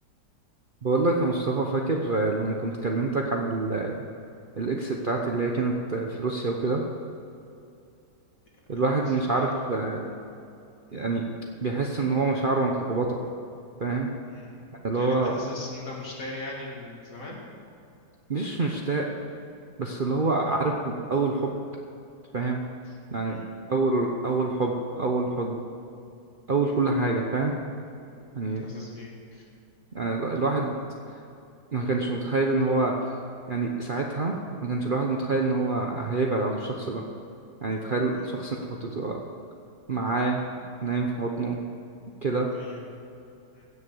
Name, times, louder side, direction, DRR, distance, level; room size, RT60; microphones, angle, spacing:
voice 1, 0.8-4.0 4.6-6.8 8.7-10.0 10.9-11.2 11.6-13.2 13.8-14.1 14.8-15.3 18.3-19.1 19.8-21.5 22.3-22.6 23.1-25.6 26.5-27.8 28.3-28.7 29.9-30.8 31.7-32.9 33.5-34.3 34.6-37.0 37.6-39.2 39.9-40.4 40.8-41.6 42.2-42.5, right 3 dB, 40° right, 0 dB, 0.8 m, -26 dB
voice 2, 8.7-9.6 9.9-10.2 10.9-11.2 14.3-14.6 14.9-17.4 22.9-23.0 23.2-23.6 26.6-26.9 28.6-29.4 38.1-38.3 42.5-42.8 43.5-43.6, left 2 dB, 50° left, -3 dB, 2.8 m, -41 dB
16.5 x 6.7 x 7.1 m, 2.6 s
omnidirectional pair, 1.8 m